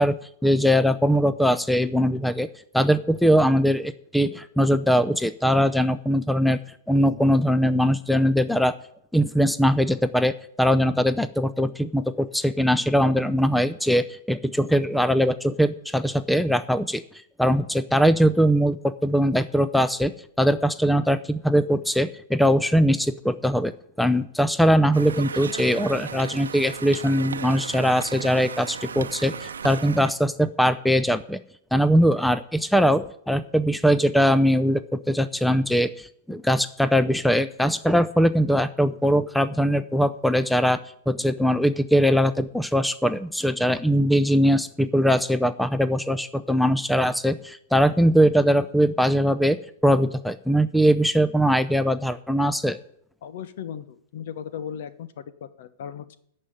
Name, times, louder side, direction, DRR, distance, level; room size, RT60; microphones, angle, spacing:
voice 1, 0.0-2.5 2.7-6.6 6.9-8.7 9.1-17.0 17.4-20.1 20.4-31.4 31.7-40.8 41.1-52.8, equal, ahead, 14 dB, 0.6 m, -21 dB
Conversation, 24.9-30.1, right 6 dB, 85° right, 0.7 m, -35 dB
voice 2, 53.2-56.2, left 8 dB, 60° left, 13 dB, 1.1 m, -37 dB
14.0 x 5.6 x 9.4 m, 0.69 s
hypercardioid pair, 115°, 0 cm